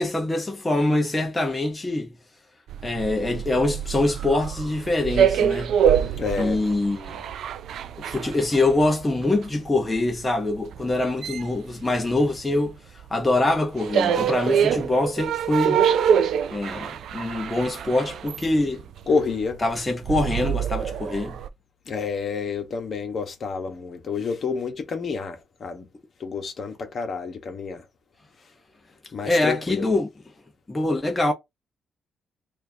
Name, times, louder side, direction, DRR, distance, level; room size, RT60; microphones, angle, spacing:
voice 1, 0.0-2.1 2.8-5.7 6.4-7.2 8.0-12.8 13.1-15.8 16.5-18.8 19.6-21.4 29.2-30.1 30.7-31.3, left 2 dB, 15° left, 0.8 m, -24 dB
sound 1, 2.7-12.7 13.0-21.5, right 8 dB, 70° right, 0.3 m, -25 dB
voice 2, 6.2-6.6 19.1-19.6 21.9-25.9 26.2-27.8 29.1-29.8, left 5 dB, 50° left, 1.2 m, -28 dB
4.4 x 2.6 x 2.8 m
cardioid pair, 90°, 0 cm